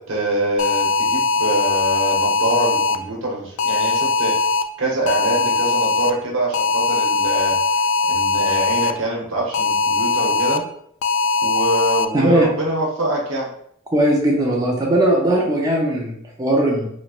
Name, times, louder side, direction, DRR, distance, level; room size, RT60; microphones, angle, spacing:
voice 1, 0.0-4.4 4.8-7.6 8.1-10.6 11.4-13.5, right 1 dB, 90° right, -3 dB, 1.1 m, -24 dB
sound 1, 0.6-3.0 3.6-4.6 5.1-6.1 6.5-8.9 9.5-10.6 11.0-12.0, left 4 dB, 80° left, 0.3 m, -20 dB
voice 2, 12.1-12.5 13.9-16.9, right 1 dB, 20° right, -2 dB, 0.5 m, -18 dB
3.0 x 3.0 x 2.4 m, 0.66 s
head